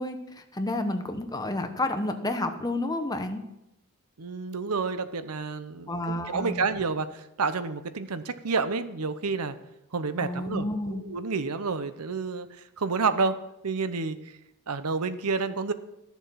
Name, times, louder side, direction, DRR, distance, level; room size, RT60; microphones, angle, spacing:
voice 1, 0.0-3.4 5.9-6.7 10.2-11.0, left 1 dB, 15° left, 6 dB, 1.0 m, -30 dB
voice 2, 4.2-9.5 9.9-12.5 12.8-13.4 13.6-14.2 14.7-15.7, right 4 dB, 90° right, 12 dB, 0.8 m, -29 dB
12.5 x 7.2 x 5.7 m, 0.90 s
head